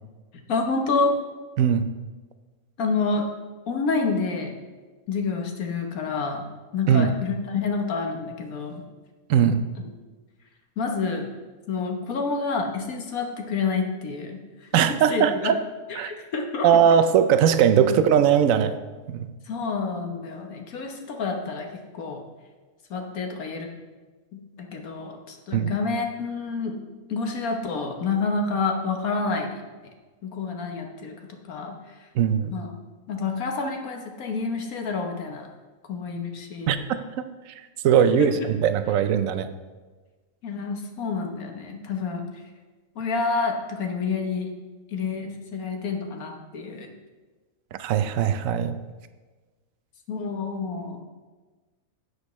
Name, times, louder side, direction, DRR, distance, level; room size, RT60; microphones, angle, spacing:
voice 1, 0.5-1.1 2.8-3.3 3.7-4.5 5.1-6.4 6.7-8.8 10.8-11.3 11.7-15.5 15.9-16.7 17.8-18.0 19.5-21.7 21.9-22.2 22.9-23.7 24.3-26.7 27.1-29.6 30.2-31.2 31.5-31.7 32.5-32.7 33.1-35.5 35.9-36.8 38.2-38.3 40.4-42.2 42.9-44.5 44.9-46.9 50.1-51.0, left 4 dB, 80° left, 3 dB, 1.5 m, -28 dB
voice 2, 9.3-9.7 14.7-15.6 16.0-16.1 16.6-18.7 19.1-19.3 25.5-25.7 32.2-32.5 36.7-36.8 37.2-37.3 37.8-39.5 47.8-48.8, right 8 dB, 70° right, 11 dB, 1.0 m, -20 dB
11.5 x 8.2 x 3.1 m, 1.3 s
omnidirectional pair, 1.5 m